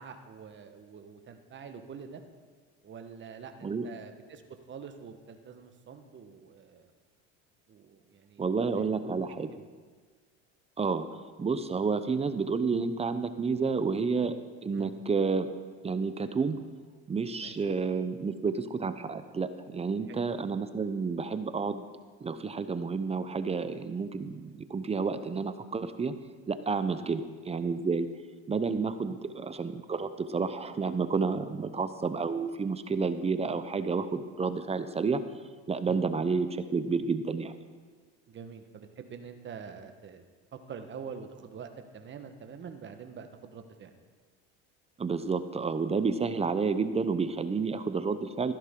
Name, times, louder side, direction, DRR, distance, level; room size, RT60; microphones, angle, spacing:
voice 1, 0.0-2.2 2.8-4.4 4.7-6.9 7.7-8.4 8.7-9.2 9.5-9.6 14.7-14.9 17.4-17.8 20.1-20.3 26.8-27.1 35.9-36.0 38.3-40.2 40.5-43.9, right 6 dB, 35° right, 7 dB, 1.3 m, -46 dB
voice 2, 8.4-9.5 10.8-11.1 11.4-14.3 14.6-15.5 15.8-16.6 17.1-21.8 22.2-26.1 26.5-28.1 28.5-35.2 35.7-37.5 45.0-48.5, right 4 dB, 20° right, 11 dB, 0.7 m, -30 dB
15.0 x 11.0 x 3.8 m, 1.5 s
supercardioid pair, 105°, 31 cm